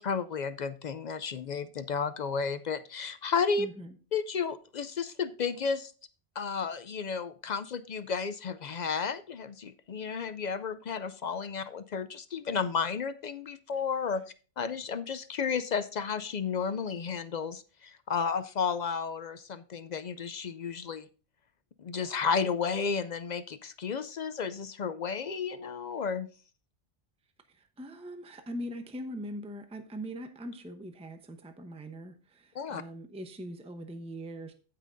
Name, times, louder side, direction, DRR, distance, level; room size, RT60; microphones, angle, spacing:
voice 1, 0.0-3.7 4.1-5.9 6.4-14.2 14.6-21.1 21.8-26.3 32.6-32.8, left 5 dB, 60° left, 13 dB, 0.4 m, -32 dB
voice 2, 3.6-4.0 27.5-34.5, equal, 5° right, 7 dB, 0.7 m, -41 dB
15.5 x 5.8 x 2.6 m, 0.36 s
omnidirectional pair, 1.2 m